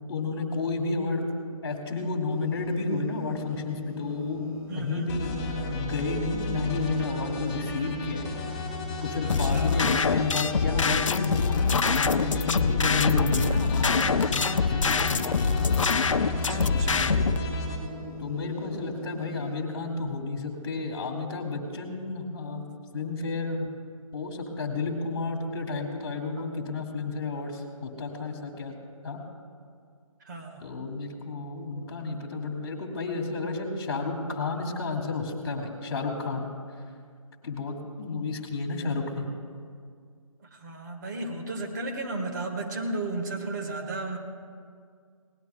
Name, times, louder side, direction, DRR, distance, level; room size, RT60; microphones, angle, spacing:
voice 1, 0.1-1.2 1.6-4.5 4.7-8.3 9.0-15.4 16.4-17.2 18.2-22.6 22.9-23.7 24.1-28.7 29.0-29.2 30.6-36.5 37.4-39.3, left 3 dB, 40° left, 3 dB, 2.2 m, -31 dB
sound 1, 2.3-19.5, left 2 dB, 10° right, 0.8 m, -41 dB
voice 2, 4.7-5.1 9.2-9.8 16.3-17.2 26.4-26.6 30.2-30.7 40.4-44.2, right 2 dB, 30° right, 3 dB, 1.4 m, -34 dB
sound 2, 5.1-17.7, left 2 dB, 20° left, 3.3 m, -35 dB
sound 3, 9.3-17.4, left 5 dB, 60° left, 0.6 m, -25 dB
21.5 x 18.5 x 2.3 m, 2.2 s
figure-of-eight pair, 155°, 18 cm